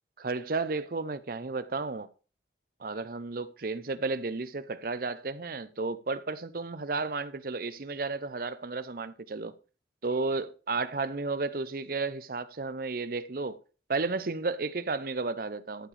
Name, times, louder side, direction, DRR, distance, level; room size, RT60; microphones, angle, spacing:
voice 1, 0.2-2.1 2.8-9.5 10.0-13.6 13.9-15.9, right 3 dB, 50° right, 0.7 m, -33 dB
12.5 x 7.5 x 3.3 m
head